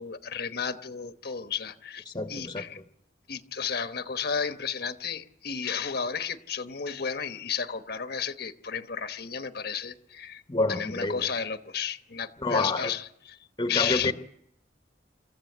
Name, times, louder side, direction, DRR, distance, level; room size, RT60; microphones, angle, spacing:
voice 1, 0.0-2.8 3.3-10.4 10.7-13.4 13.7-14.1, left 6 dB, 65° left, 1.1 m, -33 dB
voice 2, 2.1-2.7 10.5-11.3 12.4-12.9 13.6-14.1, left 2 dB, 25° left, 1.1 m, -28 dB
27.5 x 14.0 x 8.5 m
head